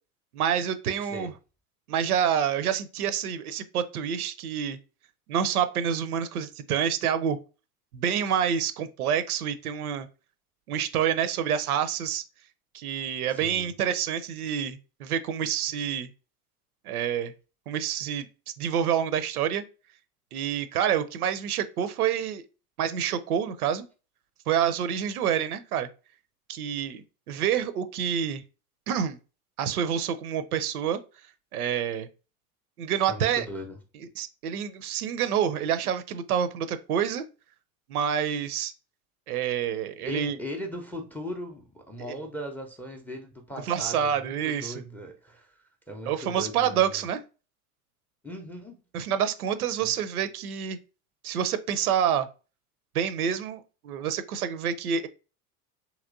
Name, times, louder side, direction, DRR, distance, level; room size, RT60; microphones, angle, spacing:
voice 1, 0.3-1.3 1.9-4.8 5.3-7.4 7.9-10.1 10.7-12.2 12.7-16.1 16.9-17.3 17.7-18.3 18.6-19.6 20.3-22.4 22.8-23.9 24.5-25.9 26.5-28.4 28.9-29.2 29.6-31.0 31.5-32.1 32.8-33.4 34.2-37.2 37.9-38.7 39.3-40.4 42.1-42.2 43.7-44.7 46.1-47.2 48.9-50.8 51.2-52.3 52.9-55.1, right 8 dB, 80° right, 0.5 m, -27 dB
voice 2, 1.0-1.3 13.3-13.7 33.1-33.8 40.0-47.0 48.2-48.8, equal, 5° left, 0.4 m, -39 dB
2.9 x 2.9 x 2.5 m
figure-of-eight pair, 75°, 44 cm